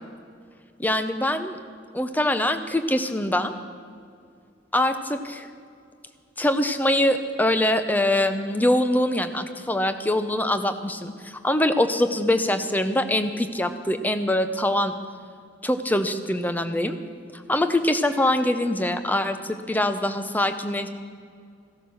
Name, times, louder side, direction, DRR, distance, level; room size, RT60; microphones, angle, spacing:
voice 1, 0.8-1.6 1.9-3.5 4.7-5.5 6.4-14.9 15.6-17.0 17.3-20.9, left 1 dB, 10° left, 9 dB, 0.7 m, -23 dB
15.0 x 12.5 x 6.3 m, 2.3 s
head